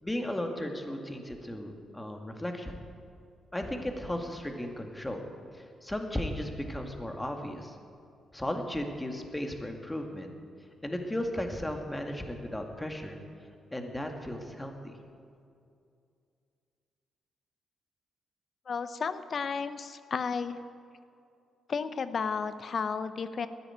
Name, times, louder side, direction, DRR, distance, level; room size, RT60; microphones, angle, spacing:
voice 1, 0.0-2.8 3.5-5.2 5.5-7.8 8.3-10.3 10.8-13.2 13.7-14.9, left 1 dB, 15° left, 4 dB, 2.2 m, -35 dB
voice 2, 18.7-20.6 21.7-23.5, left 5 dB, 55° left, 12 dB, 0.8 m, -33 dB
13.5 x 9.9 x 8.9 m, 2.4 s
supercardioid pair, 55°, 0 cm